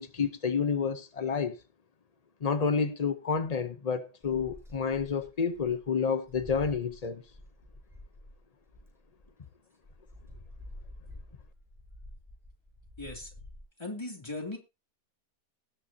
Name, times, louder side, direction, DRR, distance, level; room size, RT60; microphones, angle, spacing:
voice 1, 0.0-1.6 2.4-7.2, left 6 dB, 50° left, 0.4 m, -29 dB
sound 1, 4.2-9.3 9.8-13.6, left 1 dB, ahead, 6.5 m, -49 dB
voice 2, 13.0-13.3 13.8-14.6, left 2 dB, 15° left, 2.9 m, -38 dB
19.0 x 9.0 x 2.8 m
omnidirectional pair, 1.8 m